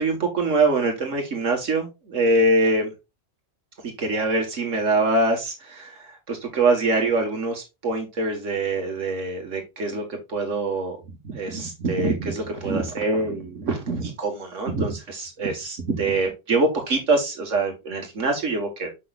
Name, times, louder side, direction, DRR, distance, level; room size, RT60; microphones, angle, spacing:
voice 1, 0.0-2.9 4.0-5.9 6.3-11.0 11.2-18.9, right 2 dB, 80° right, 3 dB, 2.0 m, -24 dB
7.4 x 6.2 x 2.5 m, 0.24 s
omnidirectional pair, 1.3 m